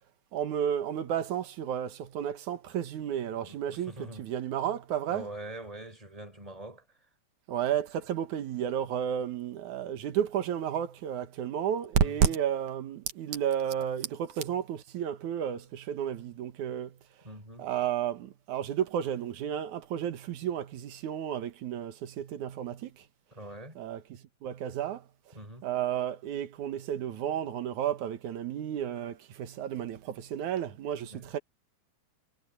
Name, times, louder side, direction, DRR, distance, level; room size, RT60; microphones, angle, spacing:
voice 1, 0.3-5.3 7.5-17.0 17.6-23.0 23.8-25.1 25.6-31.4, right 9 dB, 75° right, 2.8 m, -32 dB
voice 2, 3.5-4.3 5.1-6.8 12.0-12.4 17.2-17.7 23.3-23.8 25.3-25.7 31.1-31.2, right 1 dB, 10° right, 5.8 m, -44 dB
omnidirectional pair, 3.5 m